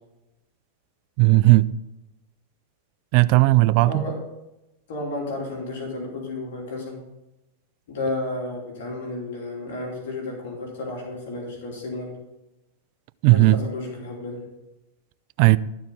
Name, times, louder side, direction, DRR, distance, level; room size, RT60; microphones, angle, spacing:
voice 1, 1.2-1.7 3.1-4.0 13.2-13.6 15.4-15.6, right 20 dB, 55° right, 0.3 m, -16 dB
voice 2, 3.8-4.2 4.9-7.0 7.9-12.1 13.3-14.4, left 2 dB, 70° left, 2.9 m, -32 dB
13.0 x 4.8 x 5.3 m
hypercardioid pair, 120°, 0 cm